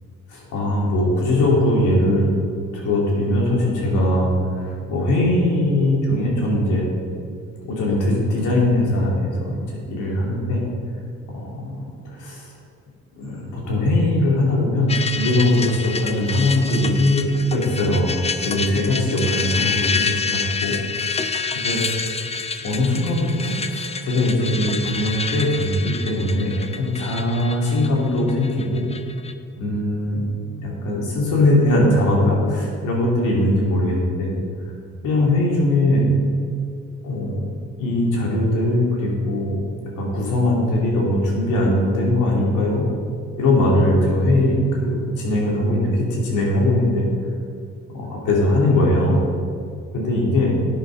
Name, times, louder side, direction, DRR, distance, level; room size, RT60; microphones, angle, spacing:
voice 1, 0.3-2.3 2.7-4.3 4.6-6.9 7.6-10.6 11.3-12.5 13.2-18.1 18.4-20.7 21.5-21.8 22.6-28.8 29.6-30.2 30.5-34.3 35.0-36.1 37.0-37.5 37.8-39.6 40.0-42.8 43.4-47.1 47.9-49.2 49.9-50.5, left 1 dB, 80° left, -3 dB, 2.8 m, -20 dB
sound 1, 14.9-29.3, left 5 dB, 20° left, 0.5 m, -28 dB
10.5 x 8.7 x 3.9 m, 2.3 s
cardioid pair, 90°, 30 cm